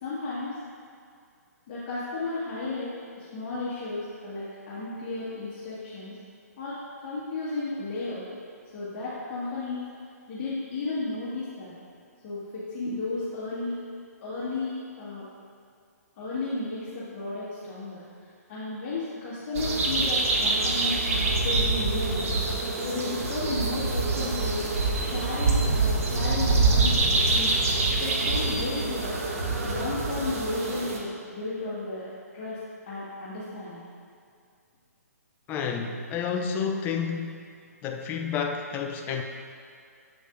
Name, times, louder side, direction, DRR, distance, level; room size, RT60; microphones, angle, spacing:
voice 1, 0.0-0.6 1.7-6.2 6.6-8.2 8.7-9.8 10.3-11.7 12.2-13.7 14.2-15.2 16.2-18.0 18.5-22.4 22.8-24.7 25.0-27.6 28.0-29.2 29.6-32.6 32.9-33.8, left 2 dB, 35° left, -10 dB, 1.6 m, -33 dB
sound 1, 19.5-31.0, right 3 dB, 55° right, 1.1 m, -25 dB
voice 2, 35.5-37.4 37.8-39.2, left 6 dB, 20° left, 4 dB, 0.5 m, -30 dB
8.1 x 7.4 x 2.5 m, 2.3 s
figure-of-eight pair, 135°, 9 cm